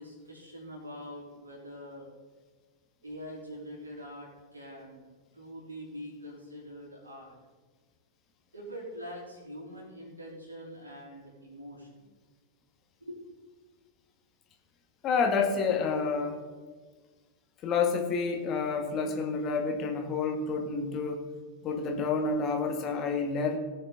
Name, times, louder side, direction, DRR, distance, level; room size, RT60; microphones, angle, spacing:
voice 1, 0.0-2.1 3.0-5.1 5.3-7.3 8.5-12.1 13.0-13.2, equal, 80° right, -3 dB, 3.9 m, -44 dB
voice 2, 15.0-16.4 17.6-21.2 21.6-23.6, left 4 dB, 35° left, 3 dB, 1.9 m, -29 dB
18.5 x 6.7 x 3.9 m, 1.4 s
figure-of-eight pair, 90°, 0 cm